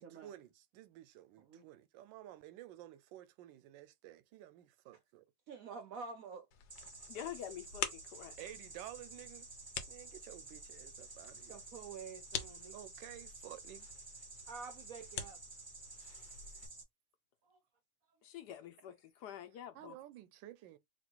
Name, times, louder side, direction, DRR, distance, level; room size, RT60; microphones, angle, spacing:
voice 1, 0.0-5.2 7.1-7.3 8.4-9.5 9.9-11.6 12.7-13.9 15.9-16.1 19.8-20.8, right 13 dB, 90° right, 1.3 m, -53 dB
voice 2, 5.5-6.5 11.5-12.8 14.5-15.4 17.4-17.6, right 5 dB, 70° right, 0.8 m, -48 dB
sound 1, 6.5-16.7, left 8 dB, 85° left, 1.4 m, -48 dB
sound 2, 6.7-16.8, right 3 dB, 20° right, 0.5 m, -52 dB
voice 3, 7.1-8.5 18.2-20.0, left 10 dB, 70° left, 1.2 m, -47 dB
3.1 x 2.9 x 4.4 m
omnidirectional pair, 1.9 m